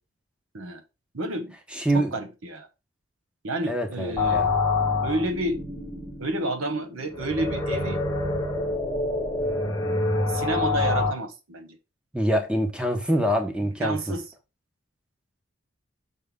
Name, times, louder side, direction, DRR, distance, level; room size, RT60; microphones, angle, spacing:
voice 1, 1.1-1.6 1.9-2.7 3.4-4.4 5.0-5.6 6.2-8.0 10.3-11.8 13.6-14.3, right 1 dB, 90° right, 1.1 m, -30 dB
voice 2, 1.7-2.1 3.6-4.5 12.1-14.0, equal, 5° right, 1.0 m, -25 dB
sound 1, 4.2-11.1, left 3 dB, 15° left, 1.1 m, -26 dB
6.4 x 5.4 x 3.7 m
head